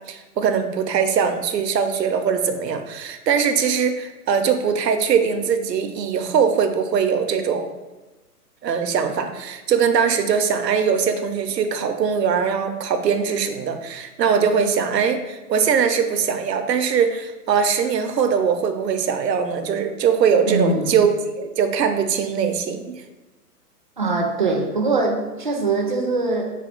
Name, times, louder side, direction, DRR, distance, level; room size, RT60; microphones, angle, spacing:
voice 1, 0.1-7.7 8.6-22.9, right 6 dB, 90° right, 7 dB, 0.7 m, -21 dB
voice 2, 20.4-21.0 24.0-26.5, right 3 dB, 35° right, 1 dB, 0.4 m, -22 dB
4.1 x 2.3 x 4.4 m, 1.1 s
hypercardioid pair, 155°, 48 cm